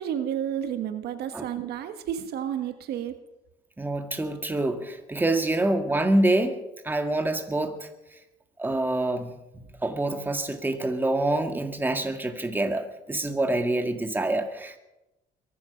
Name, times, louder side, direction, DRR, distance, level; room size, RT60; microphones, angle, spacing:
voice 1, 0.0-3.2, right 9 dB, 75° right, 8 dB, 1.5 m, -31 dB
voice 2, 3.8-7.9 8.6-14.8, right 2 dB, 10° right, 6 dB, 1.9 m, -26 dB
22.5 x 11.5 x 5.2 m, 0.94 s
cardioid pair, 110°, 17 cm